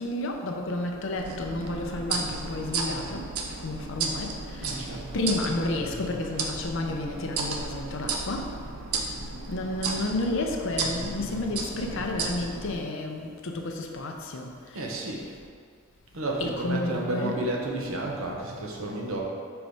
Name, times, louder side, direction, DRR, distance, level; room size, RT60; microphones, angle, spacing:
voice 1, 0.0-3.3 3.6-8.5 9.5-15.2 16.4-17.4, left 2 dB, 60° left, 2 dB, 0.7 m, -31 dB
sound 1, 1.2-12.8, right 4 dB, 90° right, 0.7 m, -34 dB
voice 2, 4.6-5.0 14.7-15.2 16.1-19.2, right 2 dB, 70° right, -1 dB, 1.0 m, -31 dB
5.2 x 4.7 x 4.8 m, 2.2 s
head